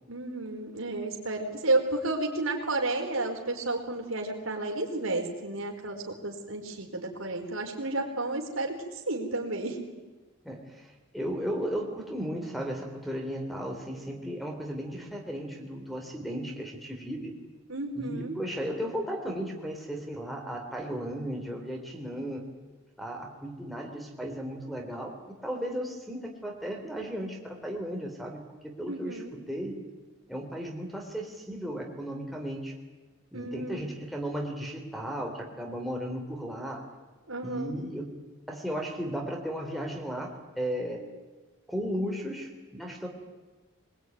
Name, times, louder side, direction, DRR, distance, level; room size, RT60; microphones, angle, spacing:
voice 1, 0.1-8.8 9.1-9.8 17.7-18.4 28.9-29.3 33.3-33.9 37.3-37.8, right 2 dB, 80° right, 2 dB, 4.6 m, -31 dB
voice 2, 10.4-17.3 17.9-22.4 23.0-25.2 25.4-29.8 30.3-32.7 33.3-36.8 37.4-38.1 38.5-41.0 41.7-43.1, equal, ahead, -1 dB, 3.8 m, -35 dB
24.0 x 21.0 x 9.6 m, 1.2 s
head